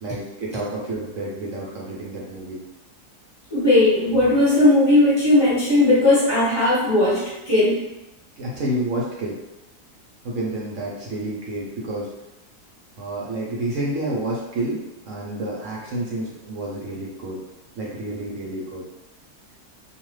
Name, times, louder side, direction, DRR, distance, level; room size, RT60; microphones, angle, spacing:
voice 1, 0.0-2.6 8.4-9.4 10.2-12.1 13.0-17.4 17.7-18.8, right 1 dB, 60° right, -4 dB, 0.9 m, -29 dB
voice 2, 3.5-7.8, left 2 dB, 20° left, -8 dB, 1.1 m, -17 dB
2.6 x 2.4 x 3.1 m, 0.95 s
omnidirectional pair, 1.7 m